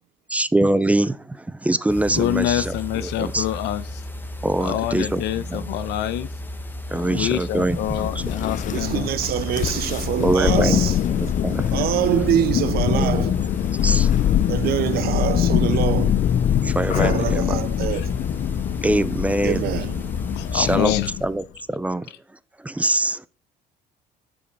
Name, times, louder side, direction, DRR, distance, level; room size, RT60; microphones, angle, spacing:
voice 1, 0.3-2.7 3.0-3.5 4.4-5.2 5.5-5.7 6.9-8.2 10.2-10.8 11.1-11.8 12.9-13.3 13.8-14.3 16.6-17.6 18.8-19.6 20.5-20.9 21.2-22.1 22.6-23.3, right 2 dB, 10° right, 0.4 m, -23 dB
sound 1, 1.9-20.8, left 1 dB, 10° left, 1.2 m, -34 dB
voice 2, 2.1-4.0 4.6-6.3 6.9-9.2 15.7-15.8 17.9-18.1 20.3-21.2 22.1-22.2, left 12 dB, 80° left, 0.8 m, -26 dB
Thunder, 7.7-21.3, left 10 dB, 50° left, 0.5 m, -23 dB
voice 3, 8.7-10.9 11.7-13.3 14.5-16.2 17.0-18.1 19.4-20.0, right 12 dB, 65° right, 0.5 m, -24 dB
7.0 x 5.2 x 5.3 m
cardioid pair, 110°, 17 cm